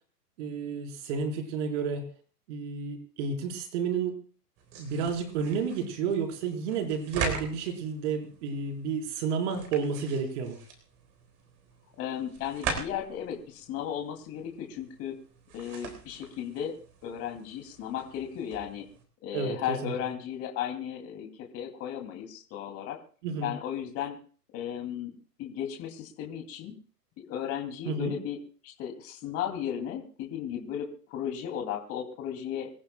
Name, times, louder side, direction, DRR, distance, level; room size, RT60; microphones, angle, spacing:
voice 1, 0.4-2.0 2.5-4.2 4.8-10.6 19.3-19.9 23.2-23.5 27.9-28.1, right 5 dB, 45° right, 3 dB, 4.3 m, -31 dB
sound 1, 4.6-19.0, right 5 dB, 30° right, 3.9 m, -42 dB
voice 2, 12.0-15.2 15.5-16.7 17.0-18.8 19.2-23.0 23.4-24.2 24.5-26.7 27.2-28.4 28.6-32.7, left 9 dB, 30° left, 3 dB, 2.7 m, -35 dB
27.0 x 15.0 x 2.3 m, 0.42 s
hypercardioid pair, 125°, 49 cm